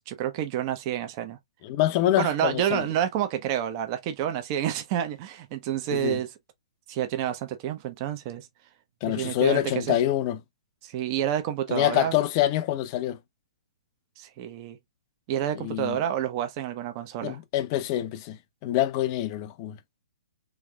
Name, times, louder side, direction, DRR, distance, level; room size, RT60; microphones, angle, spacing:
voice 1, 0.0-1.4 2.2-6.3 6.9-8.5 9.1-10.0 10.8-12.2 14.2-14.8 15.3-17.4, right 11 dB, 35° right, 0.7 m, -29 dB
voice 2, 1.6-2.8 5.9-6.2 9.0-10.4 11.7-13.2 15.6-16.0 17.2-19.8, left 13 dB, 35° left, 0.5 m, -26 dB
3.5 x 3.2 x 2.3 m
figure-of-eight pair, 125°, 4 cm